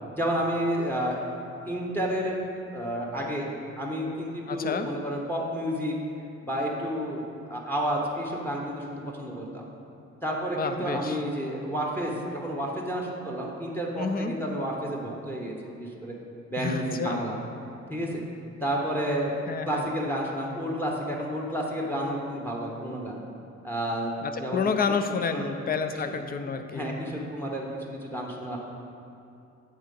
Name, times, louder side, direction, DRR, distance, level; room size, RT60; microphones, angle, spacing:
voice 1, 0.2-1.2 1.7-2.4 2.7-3.5 3.8-6.0 6.4-9.6 10.2-16.1 16.5-17.4 17.9-18.2 18.6-19.3 19.6-23.2 23.6-25.0 25.3-25.5 25.9-26.2 26.7-28.6, equal, 5° left, -1 dB, 1.0 m, -31 dB
voice 2, 4.5-4.9 10.6-11.2 14.0-14.4 16.6-17.2 19.5-19.9 24.2-26.9, left 5 dB, 30° left, 8 dB, 0.5 m, -29 dB
7.8 x 3.7 x 5.3 m, 2.7 s
cardioid pair, 90°, 30 cm